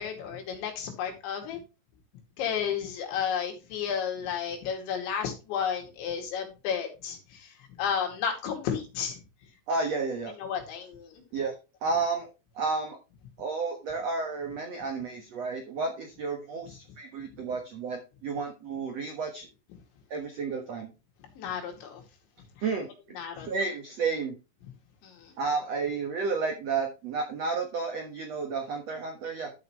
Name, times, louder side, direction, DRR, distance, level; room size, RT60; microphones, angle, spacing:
voice 1, 0.0-1.6 2.4-9.2 10.4-11.2 21.4-22.0 22.6-22.7 23.2-23.5 25.0-25.4, left 7 dB, 75° left, 2 dB, 4.7 m, -32 dB
voice 2, 9.7-10.3 11.3-11.5 11.8-12.3 12.5-13.0 13.4-19.5 20.1-20.9 22.6-22.9 23.4-24.4 25.4-29.5, right 4 dB, 80° right, 4 dB, 1.4 m, -31 dB
13.0 x 6.6 x 3.1 m, 0.29 s
omnidirectional pair, 5.3 m